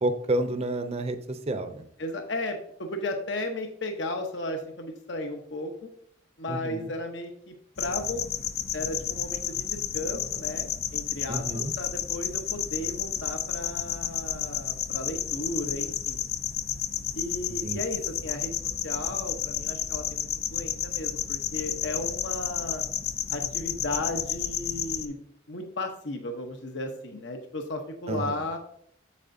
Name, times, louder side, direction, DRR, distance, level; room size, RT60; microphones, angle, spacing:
voice 1, 0.0-1.8 6.5-6.9 11.3-11.7 17.5-17.8 28.1-28.4, right 1 dB, 35° right, 8 dB, 0.6 m, -30 dB
voice 2, 2.0-5.9 6.4-8.2 8.7-16.2 17.2-18.5 18.8-22.8 23.3-25.2 25.5-28.6, left 1 dB, 70° left, 4 dB, 0.9 m, -35 dB
sound 1, 7.8-25.1, left 9 dB, 55° left, 0.6 m, -31 dB
8.4 x 7.4 x 2.7 m, 0.66 s
head